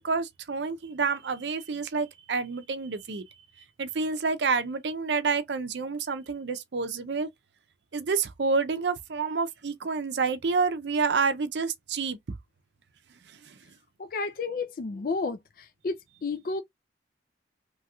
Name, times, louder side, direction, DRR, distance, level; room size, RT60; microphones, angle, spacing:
voice 1, 0.0-3.2 3.8-7.3 7.9-12.2 13.5-13.6, right 4 dB, 75° right, 0.5 m, -28 dB
voice 2, 14.0-16.6, left 4 dB, 50° left, 0.4 m, -32 dB
3.0 x 2.9 x 2.3 m
head